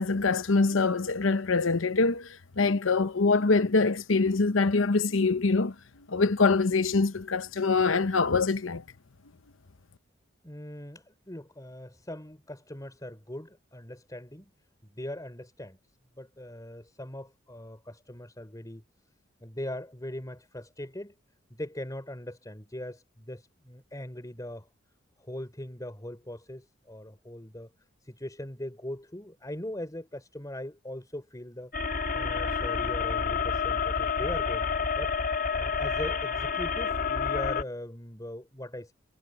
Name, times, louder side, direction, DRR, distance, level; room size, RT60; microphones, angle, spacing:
voice 1, 0.0-2.2 2.6-5.7 6.1-8.8, left 3 dB, 80° left, 0.9 m, -24 dB
voice 2, 10.4-14.5 14.8-15.8 16.2-18.8 19.4-21.1 21.5-24.7 25.2-27.7 28.0-31.7 32.1-35.1 35.5-38.9, left 1 dB, 20° left, 4.8 m, -40 dB
sound 1, 31.7-37.6, left 5 dB, 50° left, 3.2 m, -29 dB
head